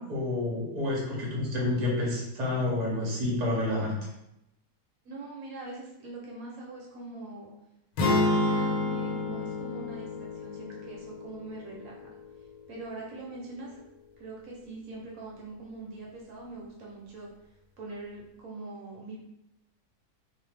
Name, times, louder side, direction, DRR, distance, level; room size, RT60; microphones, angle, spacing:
voice 1, 0.0-3.9, left 2 dB, 35° right, -4 dB, 0.7 m, -29 dB
voice 2, 5.0-7.5 8.0-12.0 12.7-13.8 14.2-17.3 17.8-19.2, right 2 dB, 70° right, -2 dB, 1.1 m, -42 dB
sound 1, 8.0-12.1, left 2 dB, 80° left, 1.1 m, -29 dB
2.6 x 2.2 x 3.2 m, 0.86 s
omnidirectional pair, 1.6 m